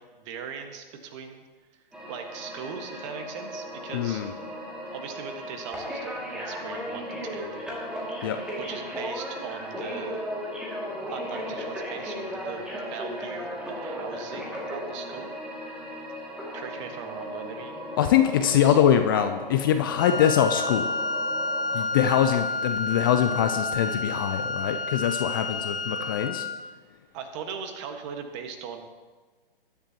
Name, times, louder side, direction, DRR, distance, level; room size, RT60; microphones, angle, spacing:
voice 1, 0.0-1.4 1.7-4.2 4.9-8.1 8.6-10.3 11.1-15.3 16.5-18.0 18.2-18.8 27.1-28.8, right 6 dB, 30° right, 5 dB, 1.6 m, -39 dB
sound 1, 1.9-21.9, equal, 5° right, 2.3 m, -36 dB
voice 2, 3.9-4.3 8.2-8.4 18.0-20.9 21.7-26.5, left 9 dB, 25° left, 8 dB, 0.4 m, -23 dB
Wind instrument woodwind instrument, 20.0-26.6, left 2 dB, 70° left, 1.0 m, -30 dB
20.0 x 10.0 x 2.9 m, 1.3 s
figure-of-eight pair, 130°, 29 cm